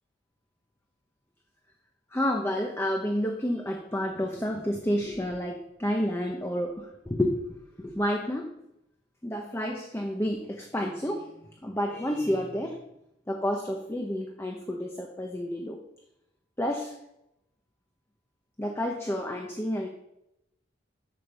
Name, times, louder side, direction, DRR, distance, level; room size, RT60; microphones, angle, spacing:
voice 1, 2.1-7.4 7.8-8.5 9.2-11.3 11.6-12.8 13.3-15.8 16.6-17.0 18.6-19.9, equal, 15° left, 2 dB, 0.9 m, -30 dB
11.0 x 5.3 x 6.7 m, 0.84 s
head